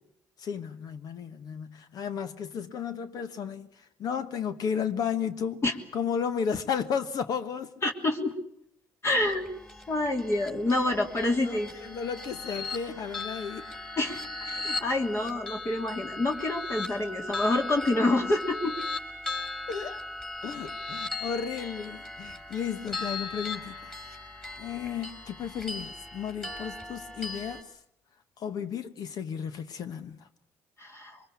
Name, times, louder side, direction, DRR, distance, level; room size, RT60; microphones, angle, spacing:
voice 1, 0.4-5.6 5.9-7.7 11.2-13.7 19.7-20.1 20.4-23.9 24.6-27.8 28.4-30.3, left 7 dB, 60° left, 1.4 m, -33 dB
voice 2, 7.8-8.3 9.0-9.5 9.9-11.7 14.0-18.7 30.8-31.2, left 2 dB, 40° left, 3.1 m, -27 dB
sound 1, 9.2-27.6, left 2 dB, 10° left, 4.4 m, -38 dB
23.5 x 21.0 x 8.5 m
supercardioid pair, 65°, 7 cm